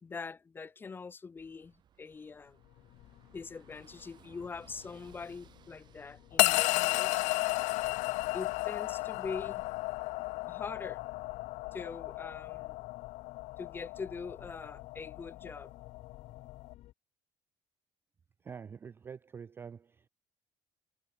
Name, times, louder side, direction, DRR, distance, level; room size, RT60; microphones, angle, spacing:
voice 1, 0.0-2.6 3.3-7.2 8.3-9.6 10.5-11.0 11.7-12.8 13.6-15.7, left 5 dB, 15° left, 1.1 m, -43 dB
Car passing by / Engine, 1.4-9.3, right 10 dB, 35° right, 8.0 m, -64 dB
sound 1, 2.3-16.9, left 16 dB, 60° left, 1.7 m, -54 dB
sound 2, 6.4-16.7, left 23 dB, 85° left, 0.4 m, -33 dB
voice 2, 18.4-20.1, right 6 dB, 20° right, 0.3 m, -46 dB
cardioid pair, 180°, 12 cm